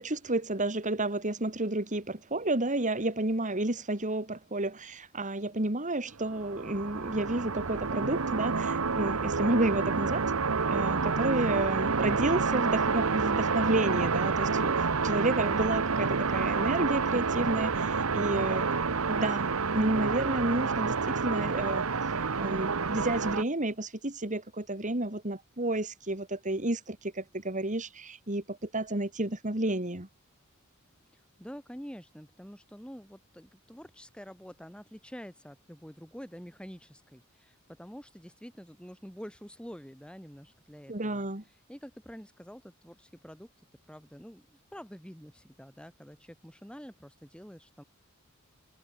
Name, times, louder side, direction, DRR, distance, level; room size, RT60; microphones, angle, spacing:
voice 1, 0.0-10.3 10.7-18.7 19.1-30.1 40.9-41.4, right 2 dB, 35° right, 3.1 m, -31 dB
sound 1, 6.2-23.4, right 4 dB, 85° right, 1.1 m, -29 dB
voice 2, 31.1-41.3 41.7-43.5 43.9-47.8, equal, 5° left, 7.6 m, -47 dB
head